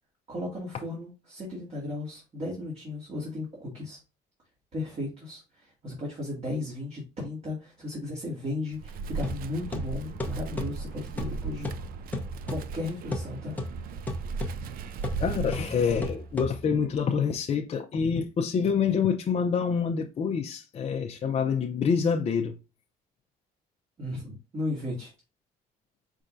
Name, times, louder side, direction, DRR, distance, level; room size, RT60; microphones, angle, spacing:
voice 1, 0.3-4.0 4.7-11.7 12.5-14.0 24.0-25.1, left 2 dB, 40° right, 2.3 m, -35 dB
Wind, 8.7-16.5, right 4 dB, 60° right, 0.5 m, -37 dB
sound 1, 9.2-16.9, left 1 dB, 10° left, 0.9 m, -37 dB
voice 2, 15.2-22.6, left 6 dB, 40° left, 0.6 m, -26 dB
5.4 x 3.6 x 2.6 m
cardioid pair, 110°, 17 cm